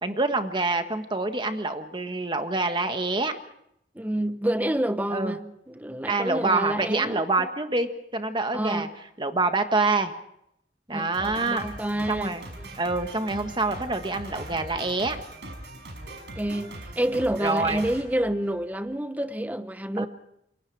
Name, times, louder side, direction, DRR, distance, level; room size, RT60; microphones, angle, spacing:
voice 1, 0.0-3.3 5.1-5.4 6.1-8.9 9.2-10.1 10.9-11.6 12.1-12.4 12.8-15.2 17.4-17.8 20.0-20.1, right 3 dB, 25° right, 1.5 m, -26 dB
voice 2, 3.9-7.5 8.5-8.9 10.9-12.4 16.4-20.1, right 1 dB, 10° right, 0.9 m, -28 dB
Drum kit, 11.1-18.9, right 1 dB, 70° right, 6.0 m, -41 dB
28.0 x 23.5 x 4.8 m
head